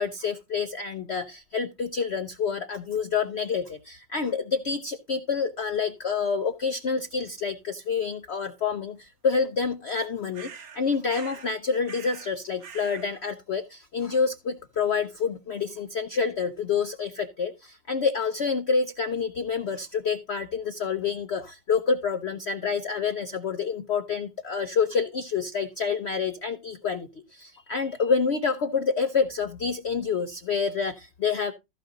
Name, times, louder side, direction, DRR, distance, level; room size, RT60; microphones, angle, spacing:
voice 1, 0.0-10.5 10.7-31.5, left 5 dB, 85° left, 0.5 m, -28 dB
sound 1, 10.3-10.8 11.1-11.6 11.9-12.3 12.6-13.1, right 6 dB, 55° right, 1.4 m, -44 dB
14.5 x 5.0 x 3.8 m
omnidirectional pair, 2.0 m